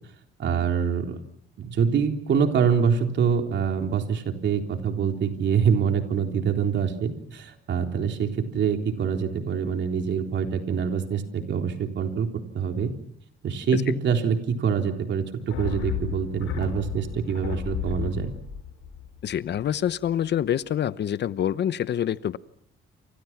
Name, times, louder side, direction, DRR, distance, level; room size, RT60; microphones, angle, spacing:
voice 1, 0.4-1.2 1.6-12.3 12.5-12.9 13.4-18.3, right 6 dB, 65° right, 4 dB, 3.7 m, -25 dB
sound 1, 15.5-20.1 20.4-20.5, left 9 dB, 85° left, 7.2 m, -34 dB
voice 2, 19.2-22.4, left 10 dB, 60° left, 16 dB, 1.0 m, -26 dB
29.0 x 26.5 x 6.0 m, 0.68 s
cardioid pair, 90°, 20 cm